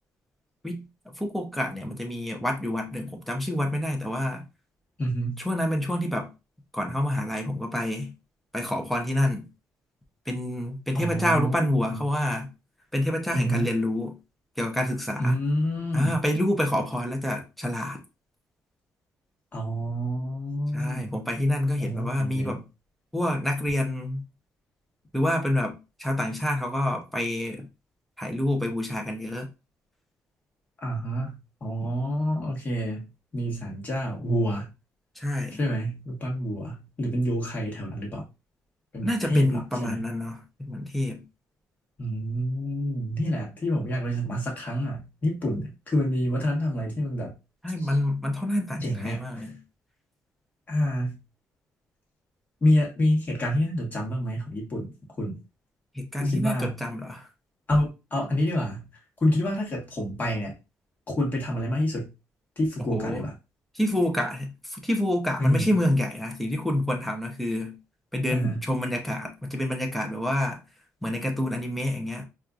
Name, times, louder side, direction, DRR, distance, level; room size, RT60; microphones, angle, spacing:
voice 1, 1.2-4.4 5.4-6.3 6.7-8.1 8.5-9.5 10.3-12.5 12.9-14.2 14.6-15.4 15.9-18.0 20.7-22.6 23.1-24.2 25.1-27.7 28.2-29.5 31.8-31.9 35.2-35.6 39.0-40.4 40.7-41.2 47.6-49.6 55.9-57.3 62.9-63.2 63.7-67.8 68.1-70.6 71.0-72.2, left 1 dB, ahead, 0.7 m, -27 dB
voice 2, 5.0-5.4 10.9-12.0 13.3-13.7 15.2-16.2 19.5-21.2 21.8-22.6 30.8-34.7 35.5-38.3 38.9-40.0 42.0-47.3 48.8-49.5 50.7-51.2 52.6-54.9 55.2-55.4 56.2-56.8 57.7-58.9 59.2-60.6 61.1-62.1 62.6-63.3 65.4-65.7 68.3-68.6, equal, 30° left, 1.3 m, -28 dB
4.3 x 2.5 x 2.4 m
cardioid pair, 130°, 6 cm